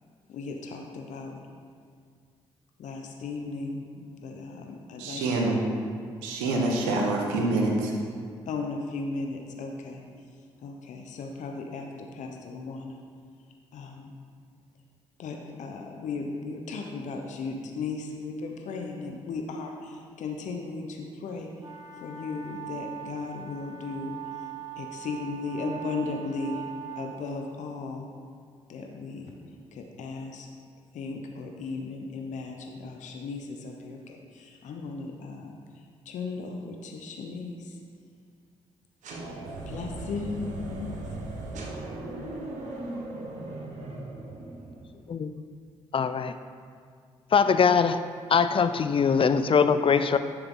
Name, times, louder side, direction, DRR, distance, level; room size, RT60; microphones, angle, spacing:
voice 1, 0.3-1.4 2.8-5.3 8.5-10.0 10.6-13.0 13.7-14.1 15.2-21.5 22.0-24.1 24.8-26.6 27.0-28.1 28.7-29.3 29.7-30.5 30.9-35.6 36.1-37.8 39.7-41.0 42.1-42.3, left 4 dB, 65° left, 2 dB, 0.9 m, -36 dB
voice 2, 5.0-5.6 6.2-7.9, right 2 dB, 85° right, 0 dB, 1.2 m, -26 dB
sound 1, 21.6-27.1, right 10 dB, 30° right, 2.3 m, -41 dB
sound 2, 39.0-45.0, right 2 dB, 70° right, 1.4 m, -38 dB
voice 3, 45.9-46.3 47.3-48.0 48.3-50.2, left 6 dB, 45° left, 11 dB, 0.5 m, -22 dB
10.5 x 6.9 x 3.9 m, 2.1 s
hypercardioid pair, 45°, 13 cm